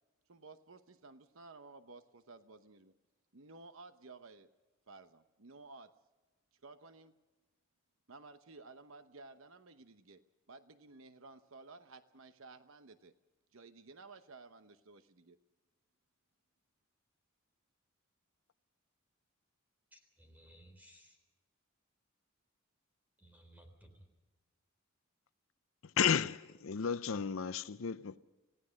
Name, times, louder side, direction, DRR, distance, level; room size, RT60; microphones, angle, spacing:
voice 1, 0.3-2.9 3.3-4.5 4.9-5.9 6.6-7.1 8.1-10.2 10.5-13.1 13.5-15.4, right 3 dB, 65° right, 0.9 m, -55 dB
voice 2, 19.9-21.2 23.2-24.1, right 1 dB, 10° right, 3.6 m, -59 dB
voice 3, 25.8-28.2, left 7 dB, 65° left, 0.6 m, -33 dB
26.5 x 17.0 x 6.4 m
head